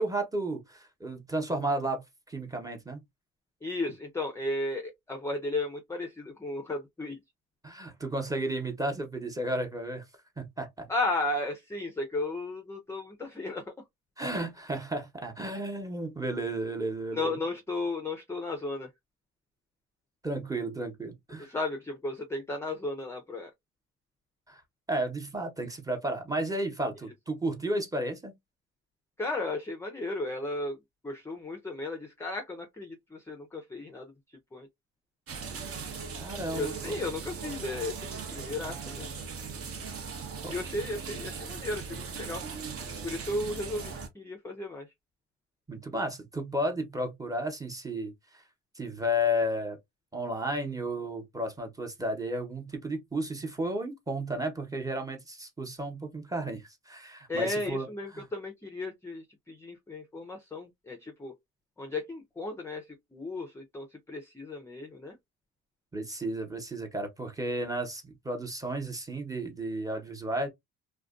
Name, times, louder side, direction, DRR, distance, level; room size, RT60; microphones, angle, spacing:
voice 1, 0.0-3.0 7.6-10.0 10.4-10.9 14.2-17.4 20.2-21.5 24.5-24.6 24.9-28.3 36.1-37.0 40.4-40.5 45.7-48.4 48.7-49.8 50.1-57.9 65.9-70.5, right 1 dB, 10° right, 0.9 m, -33 dB
voice 2, 3.6-7.2 10.9-13.7 17.1-18.9 21.4-23.5 29.2-30.8 31.0-34.7 36.5-39.1 40.5-42.4 43.0-44.9 57.3-61.3 61.8-65.2, left 2 dB, 10° left, 0.4 m, -35 dB
sound 1, 35.3-44.1, right 5 dB, 50° right, 0.9 m, -39 dB
2.4 x 2.2 x 2.4 m
cardioid pair, 95°, 31 cm